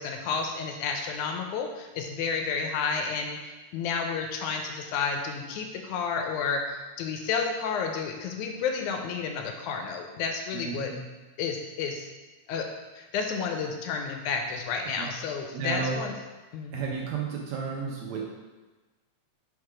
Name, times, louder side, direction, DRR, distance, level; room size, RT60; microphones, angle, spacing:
voice 1, 0.0-10.9 11.4-12.1 12.5-12.7 13.0-16.1 16.5-16.8, left 5 dB, 80° left, 4 dB, 1.9 m, -31 dB
voice 2, 10.5-11.0 15.0-15.1 15.5-16.0 16.7-18.3, right 5 dB, 75° right, -1 dB, 1.7 m, -32 dB
4.7 x 4.6 x 4.8 m, 1.2 s
omnidirectional pair, 3.7 m